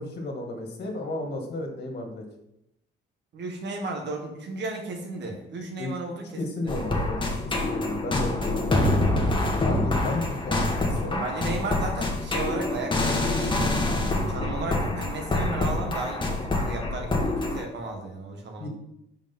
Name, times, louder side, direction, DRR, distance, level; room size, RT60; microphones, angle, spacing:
voice 1, 0.0-2.2 5.8-6.0 6.4-9.0 9.5-11.2 18.6-18.7, left 2 dB, 55° left, 2 dB, 2.0 m, -33 dB
voice 2, 3.3-6.3 6.5-6.7 11.2-14.0 14.3-18.7, right 3 dB, 60° right, 3 dB, 1.6 m, -34 dB
sound 1, 6.7-17.6, left 2 dB, 25° left, 1.4 m, -26 dB
5.2 x 5.1 x 5.4 m, 0.80 s
cardioid pair, 90°, 20 cm